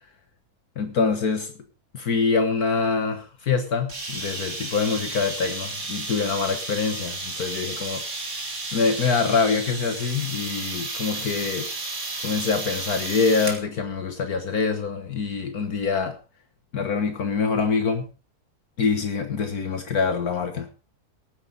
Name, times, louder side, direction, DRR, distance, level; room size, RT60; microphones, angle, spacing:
voice 1, 0.8-1.5 1.9-8.0 8.7-11.7 12.2-16.2 16.7-18.1 18.8-20.7, left 5 dB, 65° left, 7 dB, 1.8 m, -25 dB
sound 1, 3.9-13.6, right 3 dB, 45° right, 3.0 m, -33 dB
18.5 x 9.8 x 3.9 m, 0.35 s
omnidirectional pair, 1.7 m